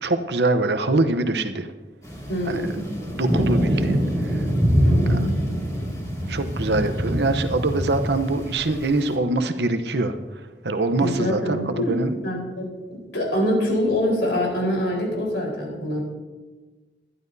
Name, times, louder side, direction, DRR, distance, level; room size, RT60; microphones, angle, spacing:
voice 1, 0.0-1.7 2.5-2.6 3.1-4.4 5.1-5.2 6.3-10.2 10.6-12.1, right 2 dB, 70° right, 8 dB, 0.9 m, -24 dB
sound 1, 2.0-9.2, equal, 20° left, 2.3 m, -24 dB
voice 2, 2.3-2.8 4.8-5.3 11.0-12.6 12.9-16.0, equal, 85° left, -1 dB, 4.3 m, -25 dB
22.0 x 11.5 x 2.7 m, 1.3 s
head